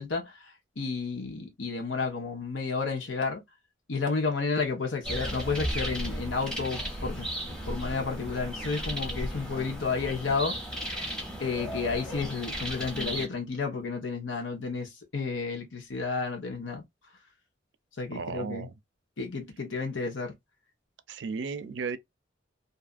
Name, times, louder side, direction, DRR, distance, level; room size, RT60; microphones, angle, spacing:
voice 1, 0.0-3.4 3.9-7.3 7.7-10.6 11.4-16.8 18.0-18.7 19.2-20.3, left 4 dB, 90° left, 1.0 m, -31 dB
sound 1, 5.0-13.3, equal, 5° left, 0.9 m, -35 dB
voice 2, 18.1-18.7 21.1-22.0, right 5 dB, 75° right, 0.5 m, -34 dB
2.7 x 2.4 x 2.4 m
head